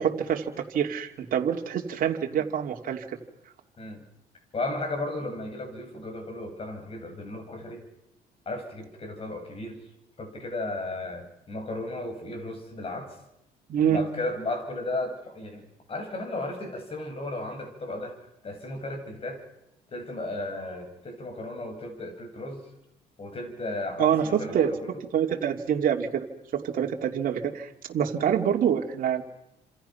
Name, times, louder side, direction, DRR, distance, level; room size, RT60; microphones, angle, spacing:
voice 1, 0.0-3.2 13.7-14.0 24.0-24.7 25.1-26.3 26.5-29.2, right 9 dB, 55° right, 2 dB, 2.8 m, -26 dB
voice 2, 4.5-7.8 8.5-9.8 10.2-13.2 13.9-15.6 15.9-18.1 18.4-19.4 19.9-22.6 23.2-25.0, left 2 dB, 35° left, 5 dB, 7.0 m, -34 dB
29.5 x 27.0 x 5.9 m, 0.88 s
cardioid pair, 110°, 17 cm